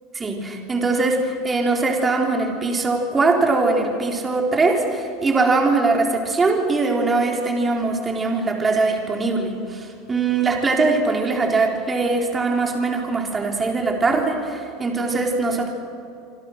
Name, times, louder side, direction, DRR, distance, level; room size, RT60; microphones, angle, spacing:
voice 1, 0.2-15.7, right 3 dB, 20° right, 1 dB, 3.6 m, -21 dB
26.5 x 26.0 x 6.5 m, 2.5 s
supercardioid pair, 130°, 0 cm